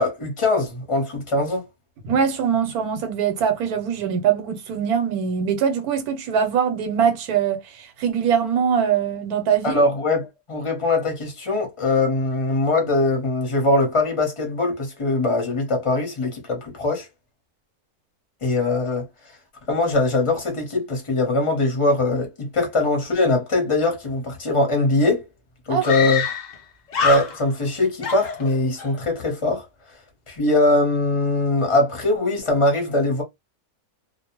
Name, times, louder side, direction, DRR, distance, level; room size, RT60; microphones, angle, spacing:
voice 1, 0.0-1.7 9.6-17.1 18.4-19.1 19.7-25.2 25.7-26.2 27.0-29.6 30.3-33.2, left 2 dB, 25° left, 0.7 m, -21 dB
voice 2, 2.0-9.8 25.7-25.9, right 7 dB, 85° right, 1.2 m, -22 dB
Screaming, 25.0-25.1 25.8-26.6 26.9-27.7 28.0-28.9, left 6 dB, 70° left, 0.4 m, -26 dB
2.4 x 2.1 x 2.9 m
omnidirectional pair, 1.6 m